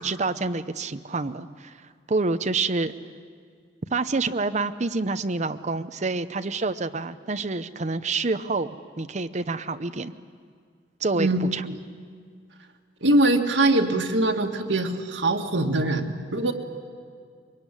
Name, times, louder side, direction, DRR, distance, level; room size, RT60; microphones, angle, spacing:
voice 1, 0.0-1.8 2.1-2.9 3.9-10.1 11.0-11.7, right 3 dB, 40° right, 10 dB, 0.7 m, -27 dB
voice 2, 11.1-11.8 13.0-16.5, right 2 dB, 90° right, 4 dB, 2.0 m, -23 dB
23.0 x 22.5 x 9.9 m, 2.1 s
head